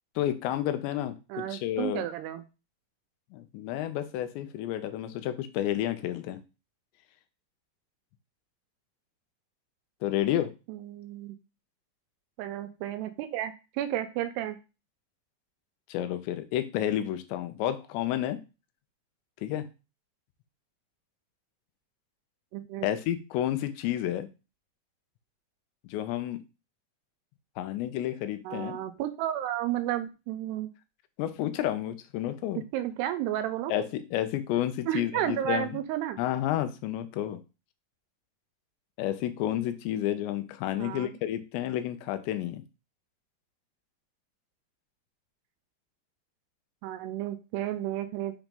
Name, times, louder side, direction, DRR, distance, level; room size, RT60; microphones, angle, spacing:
voice 1, 0.2-2.0 3.3-6.4 10.0-10.5 15.9-18.4 19.4-19.7 22.8-24.3 25.9-26.4 27.6-28.8 31.2-32.6 33.7-35.8 36.2-37.4 39.0-42.6, left 12 dB, 85° left, 10 dB, 3.0 m, -30 dB
voice 2, 1.3-2.4 10.7-11.4 12.4-14.6 22.5-22.9 28.5-30.7 32.7-33.7 34.9-36.2 40.8-41.1 46.8-48.4, right 12 dB, 85° right, 10 dB, 2.6 m, -32 dB
7.1 x 3.1 x 5.2 m, 0.30 s
omnidirectional pair, 5.0 m